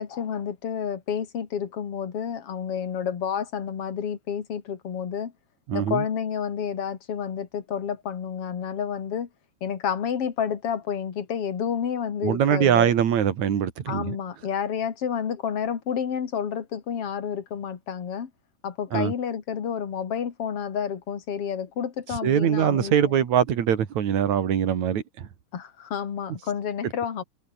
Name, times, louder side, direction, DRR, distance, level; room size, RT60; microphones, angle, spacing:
voice 1, 0.0-5.3 5.7-9.3 9.6-12.9 13.9-18.3 18.6-23.2 25.5-27.2, left 8 dB, 45° left, 2.9 m, -30 dB
voice 2, 5.7-6.0 12.2-14.2 18.9-19.1 22.2-25.3, right 9 dB, 60° right, 3.3 m, -22 dB
omnidirectional pair, 3.8 m